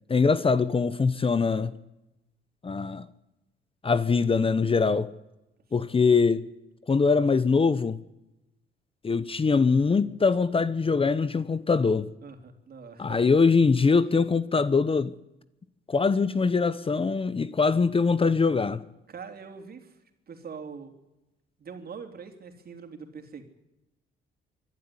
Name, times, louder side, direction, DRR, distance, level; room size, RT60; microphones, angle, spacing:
voice 1, 0.1-1.8 2.6-3.0 3.8-5.1 5.7-6.4 6.9-8.0 9.0-12.1 13.0-15.1 15.9-18.8, left 4 dB, 25° left, 0.9 m, -23 dB
voice 2, 12.2-13.2 19.1-20.9 21.6-23.4, right 5 dB, 50° right, 3.5 m, -43 dB
24.5 x 12.0 x 9.7 m
cardioid pair, 90°, 20 cm